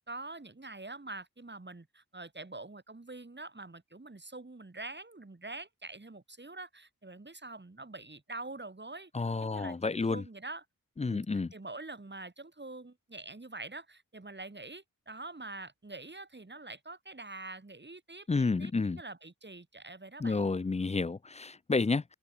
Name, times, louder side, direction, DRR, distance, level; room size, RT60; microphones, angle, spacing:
voice 1, 0.1-9.1 9.4-10.6 11.1-11.2 11.5-20.5, right 2 dB, 30° right, 4.2 m, -45 dB
voice 2, 9.1-10.2 11.0-11.5 18.3-19.0 20.2-22.0, left 3 dB, 20° left, 0.5 m, -30 dB
open air
cardioid pair, 45°, 35 cm